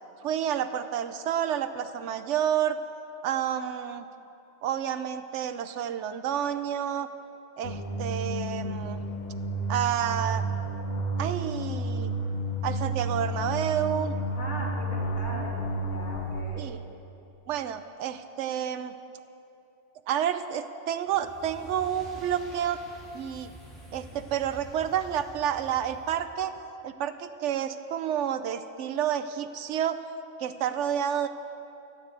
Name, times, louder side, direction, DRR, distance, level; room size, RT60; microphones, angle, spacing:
voice 1, 0.2-2.8 3.2-4.1 4.6-7.1 7.6-9.0 9.7-10.4 11.2-12.1 12.6-14.1 16.6-16.8 17.5-19.0 20.1-22.8 23.1-23.5 23.9-26.5 26.8-30.0 30.4-31.3, right 9 dB, 90° right, 10 dB, 0.9 m, -29 dB
sound 1, 7.6-16.4, right 1 dB, 40° left, 1.1 m, -31 dB
voice 2, 14.4-16.7, equal, 75° left, -4 dB, 3.2 m, -39 dB
sound 2, 21.1-26.4, right 1 dB, ahead, 3.1 m, -48 dB
13.0 x 10.5 x 8.2 m, 2.8 s
omnidirectional pair, 1.2 m